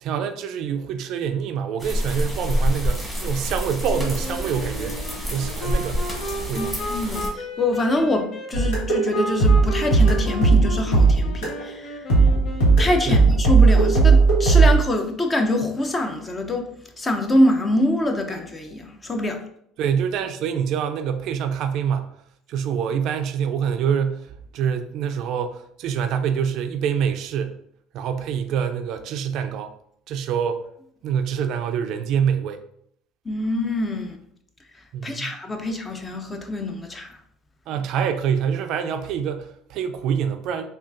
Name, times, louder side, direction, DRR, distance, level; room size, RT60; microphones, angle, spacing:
voice 1, 0.0-5.0 5.3-6.0 6.5-6.7 13.1-13.2 19.8-22.2 22.5-27.6 27.9-29.7 30.1-30.6 31.0-32.6 34.9-35.3 37.7-40.6, right 7 dB, 65° right, 0.3 m, -26 dB
sound 1, 1.8-7.3, equal, 5° left, 1.3 m, -27 dB
Wind instrument woodwind instrument, 3.8-13.3, left 1 dB, 60° left, 0.7 m, -34 dB
voice 2, 6.5-12.0 12.8-16.7 17.0-19.4 33.3-34.2 35.0-37.1, left 1 dB, 25° left, 0.5 m, -24 dB
sound 2, 8.5-11.7 12.1-14.7, right 4 dB, 85° left, 1.2 m, -16 dB
3.6 x 2.3 x 2.5 m
supercardioid pair, 95°, 0 cm